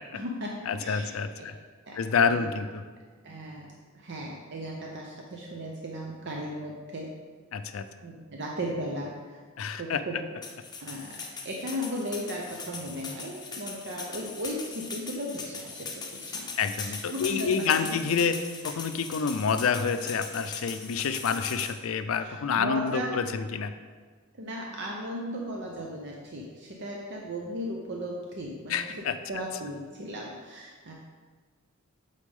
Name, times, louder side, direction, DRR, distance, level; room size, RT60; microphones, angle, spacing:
voice 1, 0.0-0.5 0.8-1.5 1.8-2.0 2.3-2.5 3.2-7.1 8.0-9.4 9.8-10.2 10.8-11.2 11.4-16.5 16.8-18.0 22.2-23.1 24.4-30.9, equal, 55° right, -1 dB, 0.7 m, -36 dB
voice 2, 0.7-1.5 2.0-2.8 7.5-7.8 9.6-10.0 16.6-23.7 28.7-29.2, left 6 dB, 75° left, 10 dB, 0.4 m, -28 dB
sound 1, 10.4-21.7, left 4 dB, 20° left, 0.7 m, -40 dB
8.3 x 4.1 x 3.5 m, 1.5 s
head